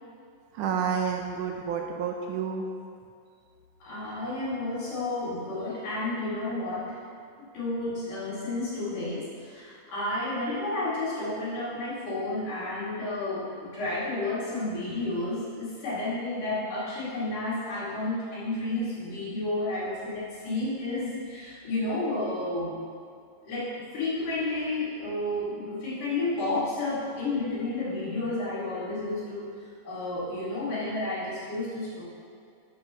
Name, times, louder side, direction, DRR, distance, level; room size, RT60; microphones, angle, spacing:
voice 1, 0.5-2.7, right 7 dB, 75° right, 2 dB, 2.1 m, -29 dB
voice 2, 3.8-7.0 7.5-22.8 23.4-29.5 29.8-32.0, left 2 dB, 70° left, -9 dB, 4.2 m, -31 dB
13.0 x 8.6 x 3.1 m, 2.3 s
omnidirectional pair, 3.9 m